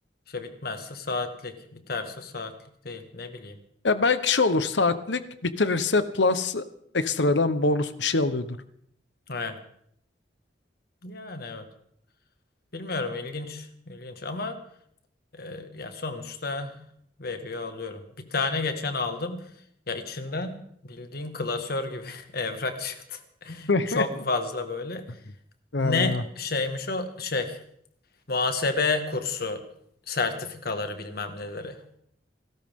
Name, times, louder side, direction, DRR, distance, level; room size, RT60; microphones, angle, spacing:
voice 1, 0.3-2.5 2.8-3.6 9.3-9.6 11.0-11.7 12.7-14.6 15.3-16.8 17.2-19.5 19.9-25.2 25.8-27.6 28.3-29.6 30.1-31.8, left 3 dB, 60° left, 7 dB, 1.8 m, -31 dB
voice 2, 3.8-6.6 6.9-8.6 23.7-24.0 25.7-26.2, left 3 dB, 75° left, 12 dB, 1.0 m, -24 dB
29.0 x 13.0 x 3.7 m, 0.69 s
head